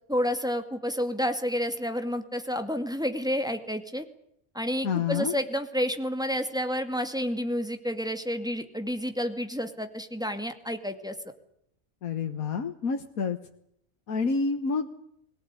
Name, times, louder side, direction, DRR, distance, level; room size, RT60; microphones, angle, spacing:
voice 1, 0.1-4.0 4.5-11.2, equal, 5° right, 7 dB, 2.2 m, -30 dB
voice 2, 4.8-5.3 12.0-13.4 14.1-14.9, left 5 dB, 85° left, 6 dB, 1.8 m, -28 dB
22.0 x 18.0 x 9.8 m, 0.72 s
omnidirectional pair, 1.5 m